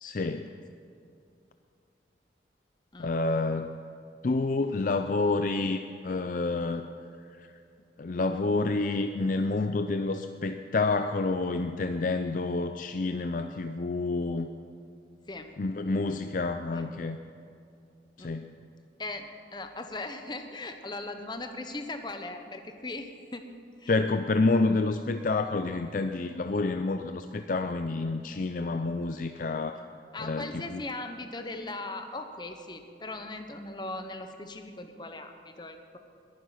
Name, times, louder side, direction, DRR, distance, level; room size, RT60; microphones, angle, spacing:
voice 1, 0.0-0.5 3.0-3.8 4.2-6.9 7.4-7.5 8.0-14.5 15.6-17.2 18.2-18.6 23.9-29.8 30.2-30.8, left 3 dB, 50° left, 8 dB, 0.4 m, -28 dB
voice 2, 19.0-23.4 23.8-23.9 30.1-36.0, left 2 dB, 25° left, 6 dB, 1.0 m, -39 dB
21.5 x 9.5 x 5.8 m, 2.4 s
head